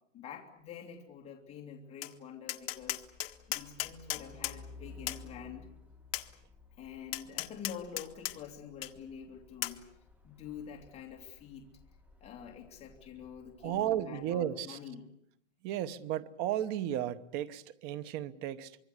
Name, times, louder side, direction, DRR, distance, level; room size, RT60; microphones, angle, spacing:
voice 1, 0.1-3.1 3.5-5.7 6.8-11.7 12.2-15.1, left 7 dB, 15° left, 2.7 m, -47 dB
Tap, 2.0-2.1 2.5-4.6 5.1-5.2 6.1-6.3 7.1-8.4 8.8-8.9 9.6-9.8, left 15 dB, 50° left, 1.6 m, -36 dB
Truck, 2.6-14.0, left 3 dB, 5° right, 1.4 m, -56 dB
voice 2, 13.6-14.8 15.6-18.8, right 11 dB, 25° right, 1.0 m, -34 dB
25.5 x 23.5 x 8.1 m
supercardioid pair, 165°, 37 cm